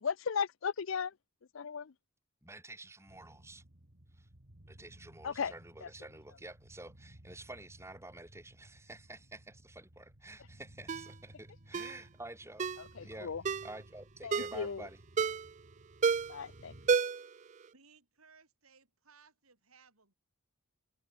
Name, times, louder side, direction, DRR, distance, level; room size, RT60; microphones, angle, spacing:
voice 1, 0.0-1.1 1.5-1.9 5.2-5.5 13.0-13.4 14.2-14.8 16.3-16.7, left 6 dB, 65° left, 0.5 m, -36 dB
voice 2, 2.4-3.6 4.1-4.3 4.7-12.7 13.0-13.3 13.6-15.0, right 2 dB, 15° right, 6.6 m, -49 dB
sound 1, 3.1-17.0, right 1 dB, 50° right, 2.7 m, -58 dB
Ringtone, 10.9-11.1 11.7-12.0 12.6-12.8 13.4-13.7 14.3-14.6 15.2-15.5 16.0-16.4 16.9-17.3 17.6-17.7, right 5 dB, 35° right, 0.3 m, -30 dB
voice 3, 17.7-20.1, right 5 dB, 90° right, 7.5 m, -63 dB
head